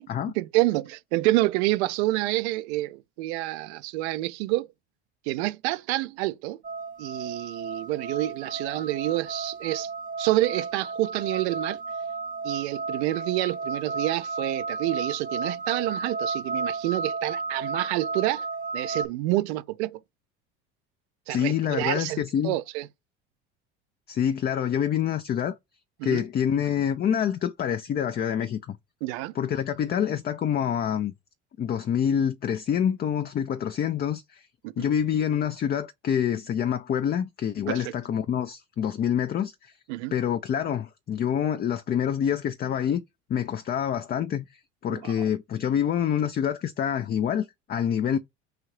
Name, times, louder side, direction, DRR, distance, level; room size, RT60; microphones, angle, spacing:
voice 1, 0.4-4.7 5.3-6.6 7.0-9.9 10.2-11.8 12.4-18.5 18.7-20.0 21.3-22.9 26.0-26.2 29.0-29.3 34.6-34.8 37.7-37.9 39.9-40.1 44.9-45.1, right 18 dB, 75° right, 0.5 m, -28 dB
sound 1, 6.6-19.1, right 4 dB, 25° right, 0.6 m, -33 dB
voice 2, 21.3-22.6 24.1-25.6 26.0-28.8 29.3-31.1 31.6-34.5 34.8-39.8 40.1-43.0 43.3-44.5 44.8-48.2, left 9 dB, 30° left, 0.4 m, -26 dB
4.7 x 2.7 x 3.1 m
hypercardioid pair, 75°, 34 cm